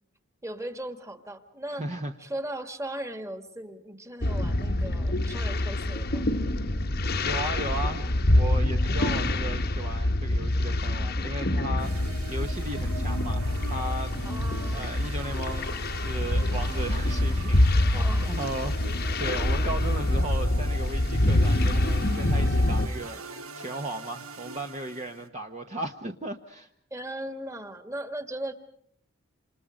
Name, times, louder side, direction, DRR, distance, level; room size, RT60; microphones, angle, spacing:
voice 1, 0.4-1.9 2.2-6.3 14.2-14.9 17.9-18.4 26.9-28.5, right 1 dB, 15° right, 8 dB, 1.9 m, -37 dB
voice 2, 1.7-2.1 7.0-14.1 14.7-23.2 23.6-26.7, right 1 dB, 30° right, 3 dB, 1.2 m, -36 dB
sound 1, 4.2-22.9, left 1 dB, 45° left, 1.2 m, -26 dB
sound 2, 11.8-25.3, right 3 dB, 85° right, 2.1 m, -42 dB
28.5 x 28.0 x 5.1 m, 0.62 s
head